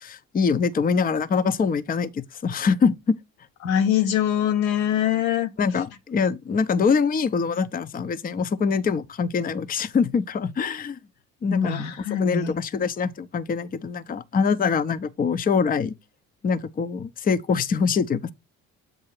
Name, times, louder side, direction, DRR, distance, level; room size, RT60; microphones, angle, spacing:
voice 1, 0.0-3.2 5.6-11.0 11.4-11.8 12.2-15.9 16.4-18.3, left 5 dB, 20° left, 0.5 m, -24 dB
voice 2, 3.6-5.5 11.5-12.5, left 9 dB, 85° left, 0.8 m, -23 dB
7.9 x 2.7 x 5.9 m
hypercardioid pair, 50°, 40 cm